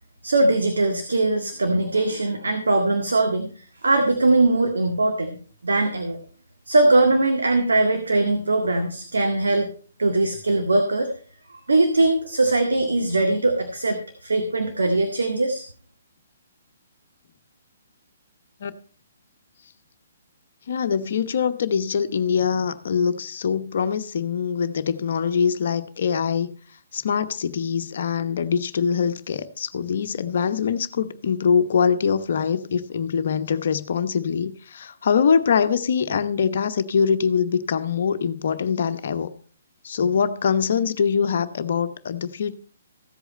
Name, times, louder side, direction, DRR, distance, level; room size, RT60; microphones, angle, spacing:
voice 1, 0.2-5.4 5.6-6.2 6.7-9.7 10.0-11.1 11.5-15.7, right 2 dB, 70° right, 1.8 m, -21 dB
voice 2, 20.7-26.5 26.9-39.3 39.8-42.5, left 6 dB, 55° left, 0.9 m, -23 dB
15.0 x 8.1 x 4.2 m
figure-of-eight pair, 130°, 0 cm